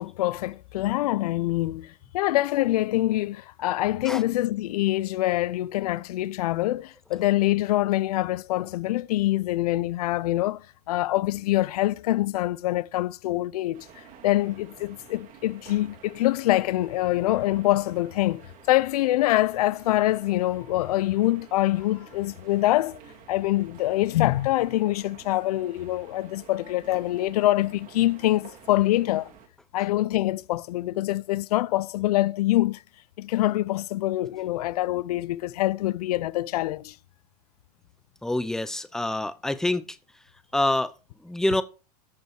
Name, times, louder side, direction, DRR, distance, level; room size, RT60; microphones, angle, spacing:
voice 1, 0.0-18.4 18.7-23.0 23.3-29.3 29.7-32.8 33.2-37.0, left 16 dB, 75° left, 0.5 m, -25 dB
sound 1, 13.7-29.5, right 8 dB, 40° right, 2.5 m, -51 dB
voice 2, 38.2-39.8 40.5-40.9 41.2-41.6, left 1 dB, 5° left, 0.7 m, -26 dB
14.0 x 5.4 x 4.7 m
supercardioid pair, 125°, 20 cm